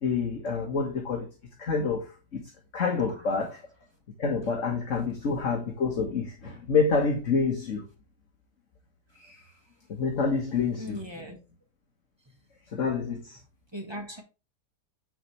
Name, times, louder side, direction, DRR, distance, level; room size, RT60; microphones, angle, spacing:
voice 1, 0.0-1.3 1.6-2.4 2.7-3.6 4.2-7.8 9.9-11.0 12.7-13.4, left 4 dB, 50° left, 1.6 m, -27 dB
voice 2, 9.1-9.6 10.8-11.4 13.7-14.2, equal, 15° right, 1.5 m, -40 dB
10.0 x 4.4 x 3.3 m
omnidirectional pair, 1.8 m